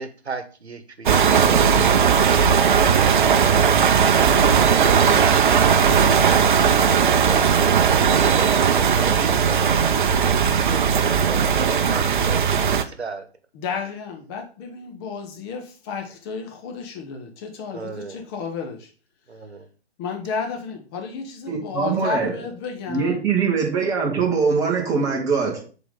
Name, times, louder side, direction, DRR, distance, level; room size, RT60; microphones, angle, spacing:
voice 1, 0.0-3.8 4.2-7.9 8.3-13.3 17.7-18.2 19.3-19.7, right 4 dB, 85° right, 1.0 m, -34 dB
sound 1, 1.1-12.8, right 7 dB, 50° right, 0.6 m, -17 dB
voice 2, 13.5-18.9 20.0-23.2, left 5 dB, 25° left, 0.9 m, -32 dB
voice 3, 21.5-22.3 22.9-25.6, right 5 dB, 10° right, 1.0 m, -22 dB
7.1 x 4.0 x 3.6 m
figure-of-eight pair, 130°, 32 cm